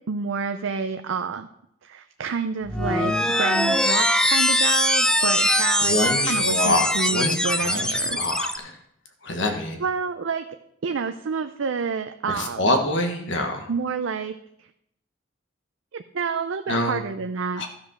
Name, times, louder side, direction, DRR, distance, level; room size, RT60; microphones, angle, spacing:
voice 1, 0.1-1.5 1.8-8.2 9.8-10.5 10.8-12.7 13.4-14.3 14.6-14.7 15.9-17.7, right 5 dB, 80° right, 8 dB, 0.5 m, -29 dB
sound 1, 2.7-8.6, left 1 dB, 5° left, 0.5 m, -22 dB
voice 2, 5.8-7.3 7.6-8.7 9.2-9.8 12.3-13.7 16.7-17.0 17.6-17.7, left 1 dB, 70° left, 4 dB, 1.4 m, -25 dB
13.0 x 5.1 x 6.1 m, 0.75 s
head